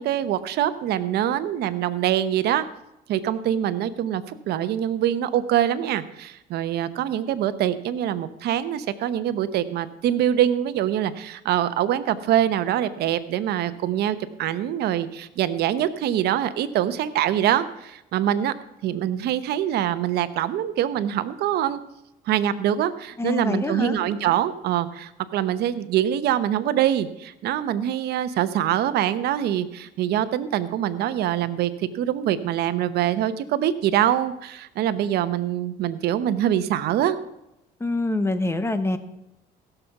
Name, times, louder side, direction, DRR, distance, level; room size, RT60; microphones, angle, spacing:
voice 1, 0.0-2.6 3.1-18.5 18.8-21.8 22.3-37.2, right 11 dB, 75° right, 13 dB, 0.9 m, -24 dB
voice 2, 23.2-24.0 37.8-39.0, left 2 dB, 15° left, 11 dB, 1.1 m, -25 dB
16.0 x 6.9 x 5.9 m, 0.89 s
cardioid pair, 110°, 17 cm